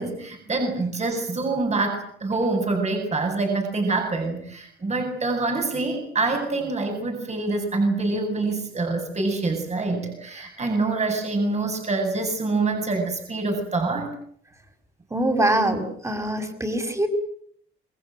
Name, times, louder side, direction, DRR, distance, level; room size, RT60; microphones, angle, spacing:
voice 1, 0.0-14.1, right 3 dB, 35° right, 3 dB, 7.8 m, -25 dB
voice 2, 15.1-17.1, right 1 dB, 15° right, 6 dB, 6.3 m, -23 dB
28.5 x 21.5 x 7.9 m, 0.64 s
cardioid pair, 90°, 20 cm